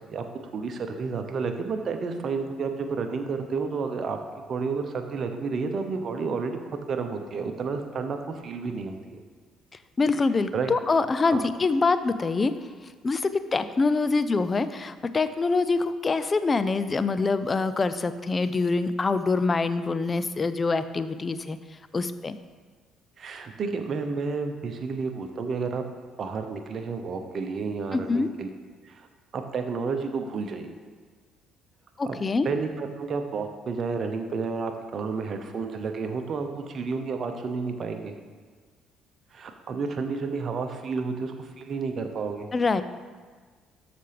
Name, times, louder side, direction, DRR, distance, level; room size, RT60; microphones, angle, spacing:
voice 1, 0.5-4.2 4.5-9.2 10.5-10.7 11.2-11.4 23.2-25.8 26.2-28.5 28.8-29.1 29.3-30.7 32.0-32.2 32.4-38.1 39.3-42.5, right 4 dB, 50° right, 6 dB, 0.8 m, -31 dB
voice 2, 10.0-12.5 13.0-21.6 21.9-22.4 27.9-28.3 32.0-32.5 42.5-42.8, left 3 dB, 30° left, 12 dB, 0.5 m, -25 dB
13.0 x 5.1 x 3.4 m, 1.5 s
hypercardioid pair, 50°, 0 cm